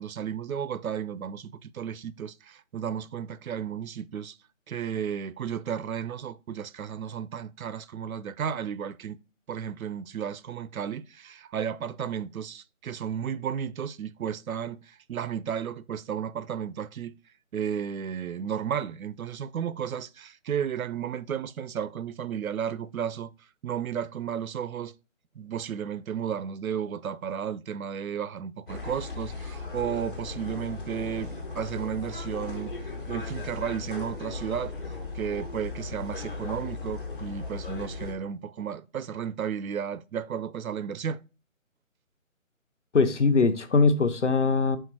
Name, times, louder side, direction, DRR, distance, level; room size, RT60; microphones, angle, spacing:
voice 1, 0.0-4.4 4.7-9.2 9.5-17.2 17.5-23.3 23.6-24.9 25.4-32.8 33.1-34.7 35.1-41.2, right 8 dB, 80° right, 0.5 m, -33 dB
sound 1, 28.7-38.1, left 3 dB, 40° left, 1.2 m, -37 dB
voice 2, 42.9-44.8, left 4 dB, 60° left, 0.8 m, -21 dB
4.6 x 4.5 x 4.5 m
figure-of-eight pair, 180°, 41 cm